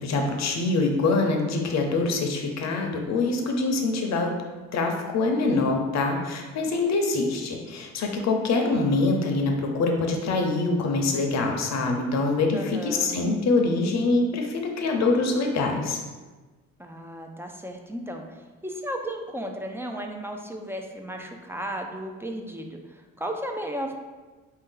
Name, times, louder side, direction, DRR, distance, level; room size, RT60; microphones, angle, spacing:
voice 1, 0.0-4.4 4.7-16.0, left 3 dB, 60° left, 2 dB, 0.8 m, -24 dB
voice 2, 12.5-13.2 16.8-23.9, equal, 10° right, 3 dB, 0.5 m, -34 dB
4.3 x 2.7 x 3.8 m, 1.3 s
cardioid pair, 90°, 30 cm